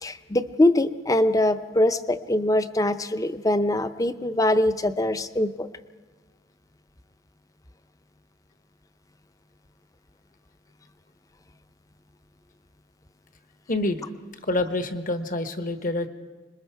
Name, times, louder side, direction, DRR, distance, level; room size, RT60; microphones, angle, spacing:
voice 1, 0.0-5.7, left 1 dB, 20° left, 11 dB, 0.6 m, -23 dB
voice 2, 13.7-14.1 14.5-16.1, left 2 dB, 45° left, 8 dB, 1.2 m, -27 dB
26.5 x 21.0 x 4.7 m, 1.4 s
head